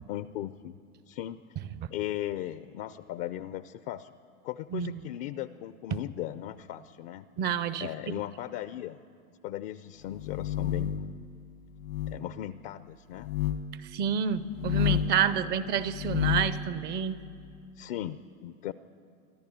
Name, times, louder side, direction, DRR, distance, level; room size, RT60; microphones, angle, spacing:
voice 1, 0.1-0.7 1.0-1.4 1.9-4.1 4.4-7.3 7.8-9.0 9.4-11.3 12.1-13.3 15.3-15.7 17.8-18.7, left 13 dB, 40° left, 14 dB, 0.5 m, -37 dB
voice 2, 7.4-7.9 13.9-17.1, right 8 dB, 25° right, 15 dB, 0.4 m, -28 dB
sound 1, 10.1-11.1 11.8-12.2 13.2-13.6 14.5-15.2 15.9-16.6, left 10 dB, 80° left, 1.6 m, -29 dB
24.5 x 14.0 x 9.9 m, 2.5 s
supercardioid pair, 135°, 43 cm